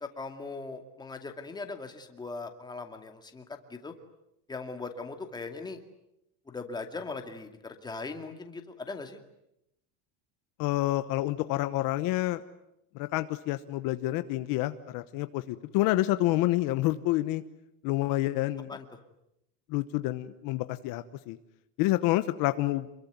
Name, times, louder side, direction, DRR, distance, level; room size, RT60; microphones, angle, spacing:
voice 1, 0.0-3.9 4.5-5.8 6.5-9.2 18.7-18.8, left 3 dB, 10° left, 5 dB, 2.3 m, -39 dB
voice 2, 10.6-12.4 12.9-17.4 17.8-18.7 19.7-21.4 21.8-22.9, left 17 dB, 55° left, 11 dB, 1.1 m, -28 dB
28.0 x 22.0 x 9.4 m, 0.84 s
cardioid pair, 160°, 41 cm